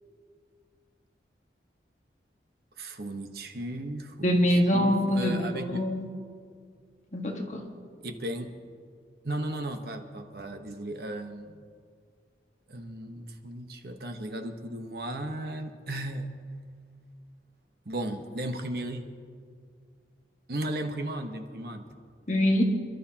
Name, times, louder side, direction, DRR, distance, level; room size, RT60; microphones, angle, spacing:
voice 1, 2.8-5.9 8.0-8.5 9.2-11.6 12.7-16.3 17.9-19.0 20.5-21.8, right 1 dB, 60° right, 5 dB, 1.2 m, -35 dB
voice 2, 4.2-6.1 7.1-7.7 22.3-22.6, equal, 40° left, 0 dB, 1.7 m, -24 dB
27.5 x 12.0 x 2.9 m, 2.1 s
head